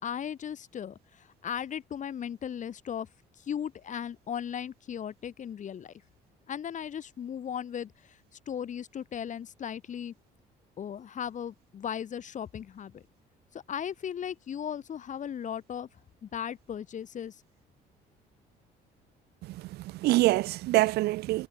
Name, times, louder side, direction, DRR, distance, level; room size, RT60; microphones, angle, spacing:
voice 1, 0.0-3.1 3.4-5.9 6.5-8.2 8.5-10.1 10.8-13.0 13.5-15.9 16.2-17.4, left 8 dB, 45° left, 2.9 m, -37 dB
voice 2, 19.5-21.5, right 18 dB, 75° right, 0.5 m, -25 dB
cardioid pair, 110°, 17 cm